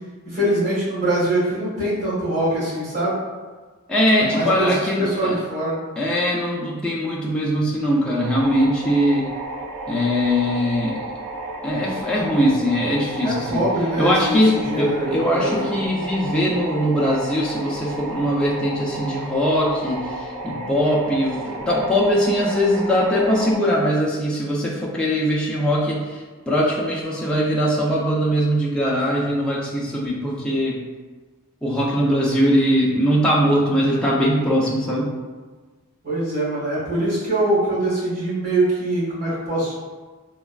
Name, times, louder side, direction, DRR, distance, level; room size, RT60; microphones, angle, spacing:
voice 1, 0.2-3.1 4.2-5.8 13.2-15.8 36.0-39.7, right 1 dB, 35° right, -11 dB, 1.4 m, -23 dB
voice 2, 3.9-5.3 6.0-9.3 9.9-11.0 11.6-13.6 14.0-26.2 26.5-30.8 31.6-35.1, equal, 5° left, -6 dB, 0.3 m, -21 dB
sound 1, 8.2-23.6, right 2 dB, 75° right, 0.5 m, -33 dB
3.2 x 2.2 x 2.2 m, 1.4 s
head